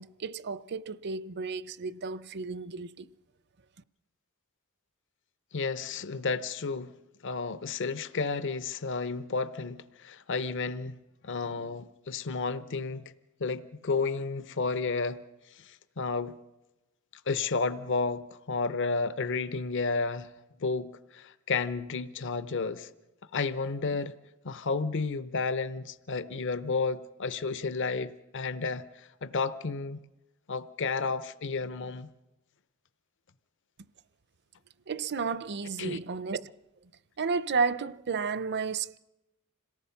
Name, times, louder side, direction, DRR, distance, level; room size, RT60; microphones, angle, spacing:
voice 1, 0.0-3.1 34.9-36.5 37.2-39.0, right 5 dB, 50° right, 0.6 m, -32 dB
voice 2, 5.5-6.9 7.2-11.0 11.2-13.1 13.4-16.4 17.3-20.3 20.6-22.9 23.3-24.2 24.4-30.0 30.5-32.1 35.8-36.0, left 4 dB, 60° left, 0.8 m, -32 dB
27.0 x 18.0 x 5.8 m
head